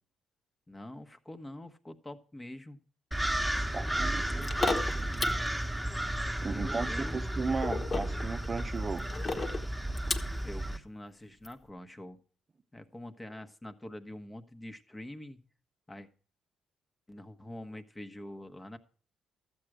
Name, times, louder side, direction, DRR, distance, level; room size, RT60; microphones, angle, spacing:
voice 1, 0.7-2.8 3.8-4.1 4.4-4.5 6.5-7.2 10.4-12.2 12.7-15.4 15.9-16.1 17.1-18.8, left 1 dB, 15° left, 9 dB, 1.2 m, -45 dB
sound 1, 3.1-10.8, right 1 dB, ahead, 1.4 m, -33 dB
voice 2, 3.7-4.5 6.4-9.0, right 4 dB, 35° right, 7 dB, 0.8 m, -35 dB
sound 2, 4.3-5.5 7.6-10.4 11.4-11.5, left 3 dB, 35° left, 1.4 m, -34 dB
13.0 x 7.8 x 4.9 m, 0.42 s
cardioid pair, 90°, 0 cm